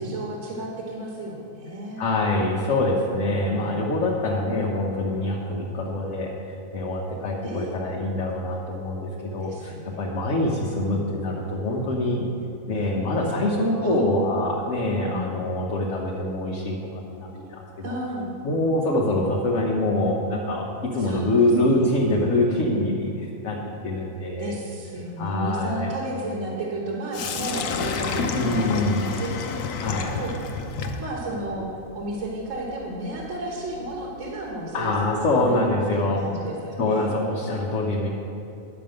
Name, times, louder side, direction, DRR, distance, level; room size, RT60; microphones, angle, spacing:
voice 1, 0.0-2.0 7.4-7.7 9.4-10.0 13.8-14.0 14.5-14.7 15.0-15.4 17.8-18.3 21.0-21.3 21.7-22.2 24.4-29.3 29.8-30.3 31.0-31.7 31.9-35.6 35.9-37.1, right 1 dB, 55° right, -2 dB, 1.5 m, -33 dB
voice 2, 2.0-12.3 12.7-16.8 17.2-17.9 18.4-23.6 23.8-24.5 25.2-25.9 28.3-29.1 29.8-30.1 34.7-36.2 36.8-38.1, left 1 dB, 55° left, -2 dB, 1.2 m, -25 dB
Sink (filling or washing), 27.1-35.1, left 5 dB, 80° left, 1.2 m, -32 dB
10.5 x 5.3 x 7.6 m, 2.7 s
omnidirectional pair, 1.6 m